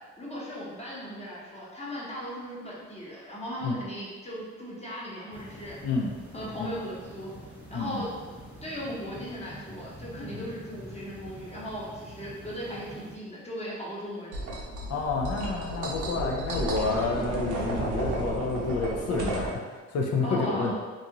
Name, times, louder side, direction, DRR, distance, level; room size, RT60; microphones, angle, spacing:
voice 1, 0.2-5.8 6.3-7.3 7.7-8.1 8.6-14.4 20.2-20.7, equal, 20° left, -7 dB, 1.0 m, -37 dB
sound 1, 5.3-13.2, equal, 5° right, 0.6 m, -46 dB
voice 2, 7.7-8.0 10.3-10.4 14.9-20.7, left 4 dB, 55° left, 0 dB, 0.4 m, -29 dB
sound 2, 14.3-19.5, right 2 dB, 80° right, 0.7 m, -32 dB
2.6 x 2.4 x 2.8 m, 1.4 s
cardioid pair, 90°, 30 cm